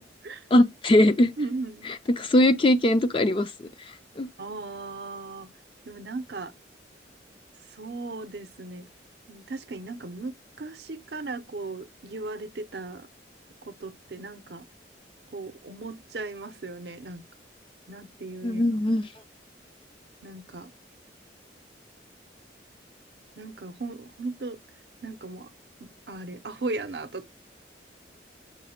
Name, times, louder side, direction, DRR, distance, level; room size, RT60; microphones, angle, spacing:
voice 1, 0.0-0.4 1.4-1.9 4.4-5.5 5.9-6.5 7.7-8.9 9.3-13.1 13.6-14.7 15.3-17.2 17.9-18.9 20.2-20.7 23.4-24.6 25.0-25.5 25.8-27.3, right 3 dB, 60° right, 0.6 m, -37 dB
voice 2, 0.5-1.3 2.2-3.5 4.2-4.3 18.4-19.0, left 1 dB, 30° left, 0.4 m, -20 dB
6.0 x 2.1 x 4.2 m
head